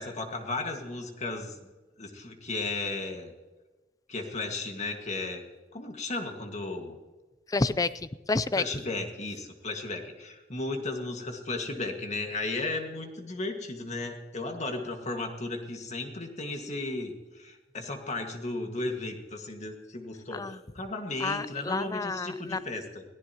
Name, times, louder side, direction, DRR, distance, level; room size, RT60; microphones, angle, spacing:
voice 1, 0.0-1.7 2.0-3.3 4.1-7.0 8.6-23.0, left 2 dB, 40° left, 4 dB, 1.8 m, -35 dB
voice 2, 7.5-8.6 20.3-20.6 21.2-22.6, left 3 dB, 20° left, 15 dB, 0.4 m, -29 dB
22.0 x 15.0 x 3.0 m, 1.2 s
head